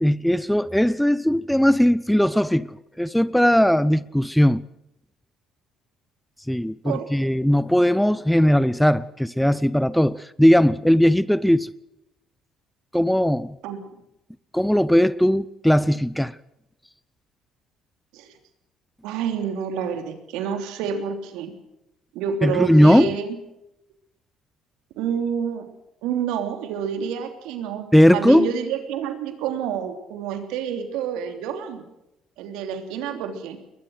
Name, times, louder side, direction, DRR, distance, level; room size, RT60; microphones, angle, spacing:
voice 1, 0.0-4.6 6.5-11.7 12.9-13.5 14.5-16.3 22.4-23.1 27.9-28.5, equal, 5° left, 0.8 m, -18 dB
voice 2, 6.8-7.3 13.6-13.8 18.1-18.3 19.0-21.5 22.1-23.4 25.0-25.7 26.0-31.8 32.4-33.6, right 7 dB, 80° right, 3.2 m, -28 dB
21.5 x 21.0 x 6.5 m
supercardioid pair, 65°, 0 cm